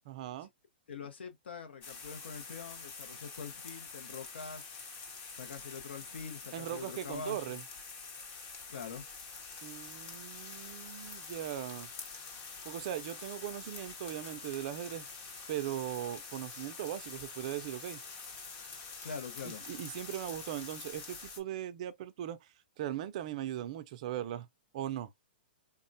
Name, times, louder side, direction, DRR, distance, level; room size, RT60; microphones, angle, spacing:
voice 1, 0.1-0.5 6.5-7.6 9.6-11.9 12.6-15.1 15.5-18.0 19.4-24.5 24.7-25.1, right 12 dB, 40° right, 0.4 m, -39 dB
voice 2, 0.9-4.8 5.3-7.6 8.7-9.1 19.0-19.6, left 5 dB, 85° left, 0.8 m, -44 dB
sound 1, 1.8-21.4, left 4 dB, 25° left, 0.7 m, -46 dB
3.5 x 2.1 x 2.6 m
hypercardioid pair, 165°, 6 cm